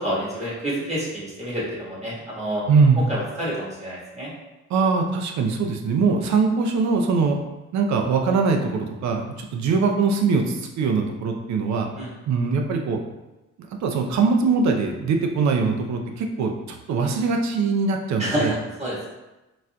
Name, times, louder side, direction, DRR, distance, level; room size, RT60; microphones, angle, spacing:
voice 1, 0.0-2.6 3.1-4.3 11.9-12.1 18.2-19.0, right 1 dB, 20° right, -7 dB, 1.4 m, -28 dB
voice 2, 2.7-3.1 4.7-7.4 7.7-11.9 12.3-13.0 13.8-18.5, right 4 dB, 65° right, 3 dB, 0.6 m, -22 dB
4.1 x 2.5 x 2.2 m, 1.0 s
cardioid pair, 90°, 30 cm